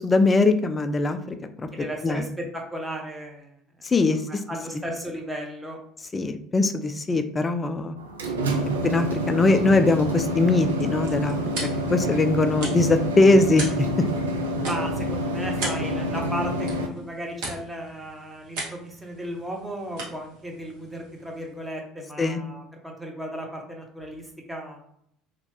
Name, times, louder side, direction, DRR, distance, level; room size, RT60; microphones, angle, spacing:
voice 1, 0.0-1.7 2.0-2.2 3.8-4.2 6.1-7.9 8.8-13.9 22.2-22.4, left 2 dB, 25° left, 8 dB, 0.3 m, -21 dB
voice 2, 1.7-5.8 14.6-24.8, equal, 10° right, 1 dB, 0.7 m, -35 dB
sound 1, 8.0-16.9, equal, 80° right, 0.3 m, -27 dB
sound 2, 10.5-21.7, right 2 dB, 65° right, 1.0 m, -39 dB
2.9 x 2.1 x 3.0 m, 0.68 s
figure-of-eight pair, 65°, 0 cm